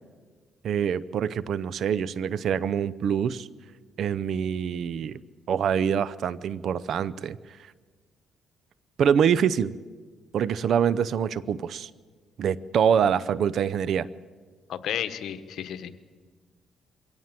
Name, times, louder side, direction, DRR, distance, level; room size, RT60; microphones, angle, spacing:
voice 1, 0.6-3.5 4.0-5.2 5.5-7.4 9.0-9.7 10.3-11.9 12.4-14.1, right 8 dB, 65° right, 19 dB, 0.7 m, -25 dB
voice 2, 14.7-16.1, left 10 dB, 75° left, 11 dB, 1.2 m, -33 dB
22.5 x 17.0 x 7.6 m, 1.5 s
cardioid pair, 90°, 0 cm